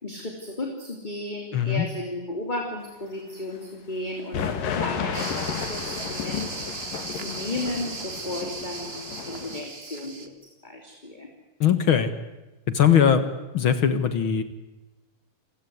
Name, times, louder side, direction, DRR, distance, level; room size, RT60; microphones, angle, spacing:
voice 1, 0.0-4.4 4.7-6.6 7.1-9.0 9.2-10.3 10.6-11.3 12.9-13.3, left 2 dB, 15° left, 2 dB, 2.8 m, -34 dB
voice 2, 1.5-1.8 11.6-12.1 12.7-13.2 13.5-14.4, left 8 dB, 50° left, 11 dB, 1.6 m, -20 dB
sound 1, 4.3-9.6, left 7 dB, 75° left, 3.8 m, -32 dB
sound 2, 5.1-10.3, right 4 dB, 30° right, 1.1 m, -37 dB
28.0 x 16.0 x 9.5 m, 1.1 s
omnidirectional pair, 4.0 m